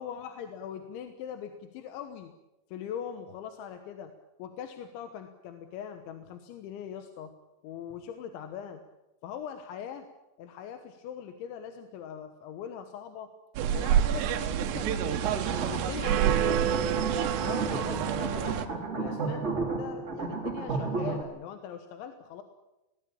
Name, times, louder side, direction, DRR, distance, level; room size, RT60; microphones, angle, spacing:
voice 1, 0.0-2.3 2.7-4.1 4.4-7.3 7.6-8.8 9.2-10.1 10.4-13.3 13.7-15.2 15.7-18.6 18.9-19.4 19.7-22.4, left 8 dB, 75° left, 7 dB, 3.5 m, -41 dB
sound 1, 13.6-18.7, right 9 dB, 70° right, 3.1 m, -27 dB
sound 2, 15.1-21.2, right 4 dB, 25° right, 1.5 m, -34 dB
21.0 x 18.5 x 8.7 m, 0.98 s
omnidirectional pair, 5.5 m